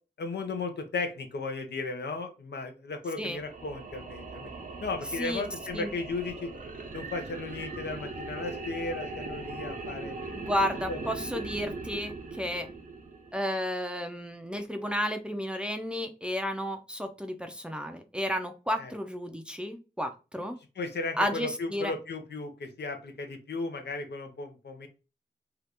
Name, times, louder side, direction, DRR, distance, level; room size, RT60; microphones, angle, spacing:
voice 1, 0.2-4.5 4.8-6.5 6.9-10.1 10.9-11.0 18.8-18.9 20.8-24.9, left 3 dB, 70° left, 6 dB, 0.6 m, -35 dB
sound 1, 3.2-13.6, right 3 dB, 50° right, 0.7 m, -40 dB
voice 2, 10.3-12.7 13.3-20.6 21.2-21.9, equal, 5° right, 6 dB, 0.5 m, -32 dB
2.8 x 2.4 x 3.4 m, 0.31 s
cardioid pair, 65°, 18 cm